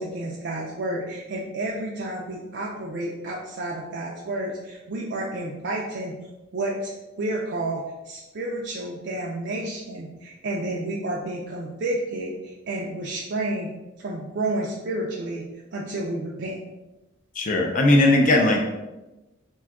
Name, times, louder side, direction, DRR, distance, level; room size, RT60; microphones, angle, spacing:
voice 1, 0.0-6.1 6.5-6.9 7.2-13.7 14.0-15.4 15.7-16.6, right 2 dB, 55° right, -3 dB, 0.4 m, -30 dB
voice 2, 17.4-18.6, left 1 dB, 40° left, 1 dB, 0.4 m, -18 dB
2.6 x 2.3 x 3.4 m, 1.0 s
head